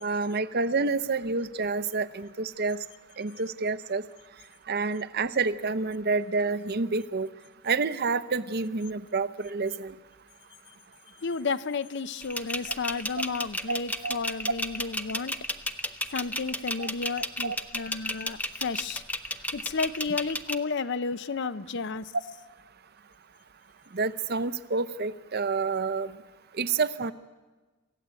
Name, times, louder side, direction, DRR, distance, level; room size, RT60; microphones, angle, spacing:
voice 1, 0.0-2.8 3.2-4.0 4.7-7.3 7.6-9.9 13.7-13.8 14.0-14.2 16.8-16.9 17.4-17.6 23.9-26.1 26.6-27.1, right 4 dB, 45° right, 13 dB, 0.7 m, -28 dB
voice 2, 11.2-15.3 16.1-19.0 19.5-22.1, left 4 dB, 55° left, 16 dB, 0.6 m, -32 dB
sound 1, 12.2-20.5, left 1 dB, 5° left, 0.6 m, -32 dB
27.5 x 15.0 x 8.3 m, 1.3 s
head